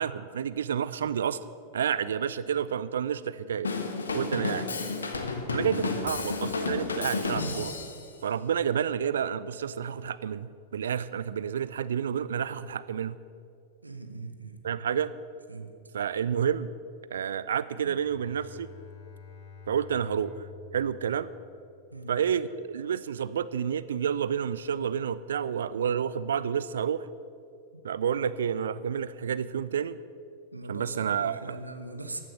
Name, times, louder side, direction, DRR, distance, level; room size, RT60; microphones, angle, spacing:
voice 1, 0.0-1.4 1.7-3.7 4.1-4.7 5.5-7.7 8.2-13.2 14.6-15.1 15.9-16.7 17.1-18.7 19.7-20.4 20.7-21.3 22.1-27.1 27.8-30.0 30.7-31.6, right 8 dB, 65° right, 16 dB, 0.5 m, -29 dB
Drum kit / Drum, 3.6-8.1, left 3 dB, 75° left, 1.3 m, -31 dB
voice 2, 13.8-14.8 15.5-15.7 21.9-22.1 27.7-27.8 30.5-32.2, right 2 dB, 80° right, 7 dB, 1.1 m, -41 dB
Bowed string instrument, 17.6-22.8, left 5 dB, 40° left, 3.5 m, -50 dB
14.5 x 9.0 x 7.1 m, 2.3 s
figure-of-eight pair, 90°, 0 cm